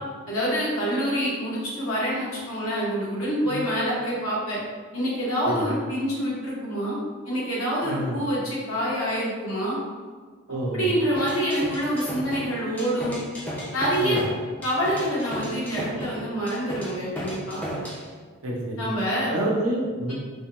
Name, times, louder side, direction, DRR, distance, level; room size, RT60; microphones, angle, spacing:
voice 1, 0.3-4.6 4.9-7.0 7.2-9.8 10.7-13.2 13.7-14.2 14.6-17.6 18.8-19.4, equal, 85° left, -6 dB, 1.1 m, -26 dB
voice 2, 7.8-8.2 10.5-10.9 14.0-14.2 18.4-18.9 19.3-20.1, right 1 dB, 90° right, -2 dB, 0.7 m, -28 dB
sound 1, 11.2-18.0, equal, 5° left, 0.4 m, -34 dB
3.3 x 2.2 x 2.9 m, 1.5 s
head